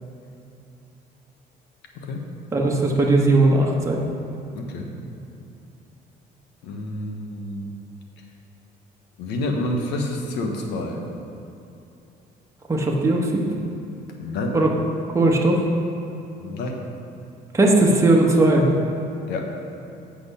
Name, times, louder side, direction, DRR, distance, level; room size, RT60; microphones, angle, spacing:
voice 1, 2.5-4.0 12.7-13.5 14.5-14.7 15.1-15.6 17.5-18.7, right 2 dB, 15° right, -1 dB, 1.3 m, -18 dB
voice 2, 4.5-4.9 6.6-7.7 9.2-11.0 14.2-14.5 16.4-16.7 19.3-19.4, left 1 dB, 85° left, 2 dB, 1.2 m, -28 dB
8.1 x 6.2 x 5.5 m, 2.8 s
cardioid pair, 110°, 17 cm